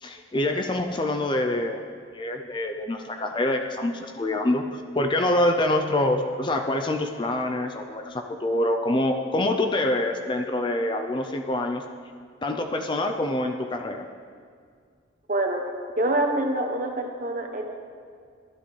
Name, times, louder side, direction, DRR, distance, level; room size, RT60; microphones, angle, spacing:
voice 1, 0.0-1.8 2.1-11.8 12.4-14.1, left 1 dB, 25° left, 5 dB, 0.4 m, -26 dB
voice 2, 15.3-15.7 16.0-17.8, right 1 dB, 40° right, 3 dB, 1.0 m, -26 dB
12.5 x 11.5 x 3.2 m, 2.1 s
head